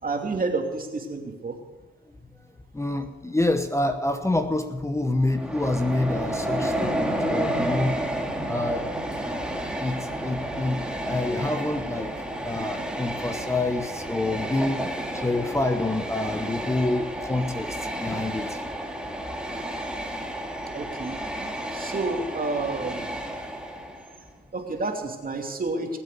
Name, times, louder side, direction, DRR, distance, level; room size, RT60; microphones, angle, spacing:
voice 1, 0.0-1.6 19.6-19.7 20.7-21.2 21.7-23.1 24.5-26.0, right 3 dB, 45° right, 2 dB, 2.8 m, -29 dB
voice 2, 2.7-8.0 8.5-8.9 9.8-10.8 11.0-12.1 12.4-18.6, left 2 dB, 15° left, 8 dB, 0.9 m, -27 dB
Train, 5.3-24.2, right 1 dB, 5° right, 2.1 m, -31 dB
20.0 x 8.1 x 7.0 m, 1.3 s
cardioid pair, 75°, 21 cm